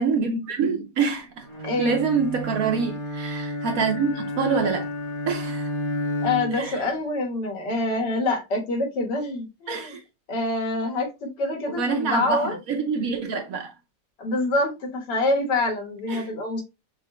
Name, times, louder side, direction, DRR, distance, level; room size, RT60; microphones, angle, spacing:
voice 1, 0.0-1.5 1.8-4.9 5.3-5.7 6.6-6.8 9.7-10.0 11.7-13.7 16.1-16.3, right 5 dB, 65° right, 0.9 m, -26 dB
Bowed string instrument, 1.5-6.7, left 1 dB, 30° left, 0.9 m, -31 dB
voice 2, 1.6-2.0 6.2-10.0 10.3-12.6 14.2-16.6, left 2 dB, 75° left, 2.0 m, -26 dB
6.0 x 2.2 x 2.9 m
omnidirectional pair, 1.9 m